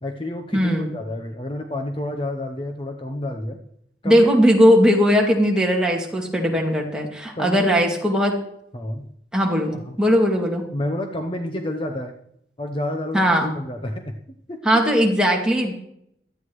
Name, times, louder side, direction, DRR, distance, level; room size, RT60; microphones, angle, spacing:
voice 1, 0.0-3.6 4.0-4.3 7.3-7.8 8.7-9.1 9.7-10.0 10.7-12.1 12.6-14.2 14.5-14.6, left 1 dB, 30° left, 4 dB, 0.8 m, -29 dB
voice 2, 0.5-0.9 4.0-8.4 9.3-10.6 13.1-13.5 14.6-15.7, equal, 5° right, -2 dB, 2.2 m, -18 dB
17.0 x 13.0 x 3.2 m, 0.75 s
head